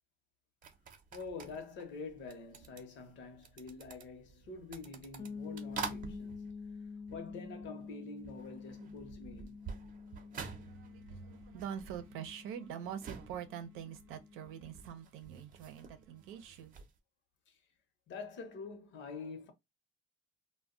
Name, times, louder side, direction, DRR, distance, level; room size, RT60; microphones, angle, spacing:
sound 1, 0.6-7.9 8.2-17.0, right 6 dB, 40° right, 0.7 m, -49 dB
voice 1, 1.1-6.4 7.1-9.6 17.5-17.6 18.1-19.5, left 4 dB, 65° left, 0.9 m, -46 dB
sound 2, 5.2-14.9, left 5 dB, 25° left, 0.5 m, -48 dB
voice 2, 10.5-16.7, right 9 dB, 80° right, 0.6 m, -45 dB
2.2 x 2.2 x 3.7 m
cardioid pair, 115°, 21 cm